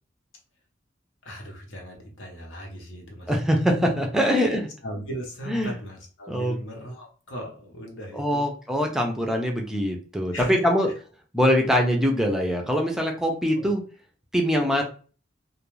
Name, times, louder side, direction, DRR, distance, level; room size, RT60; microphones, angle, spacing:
voice 1, 1.2-3.3 4.3-4.4 4.8-8.5 10.3-10.7 13.6-13.7, equal, 80° left, 1 dB, 0.9 m, -38 dB
voice 2, 3.3-4.7 5.5-5.7 6.3-6.5 8.1-10.9 11.3-13.8 14.3-14.8, equal, 5° right, 1 dB, 0.4 m, -23 dB
2.3 x 2.3 x 3.0 m, 0.38 s
head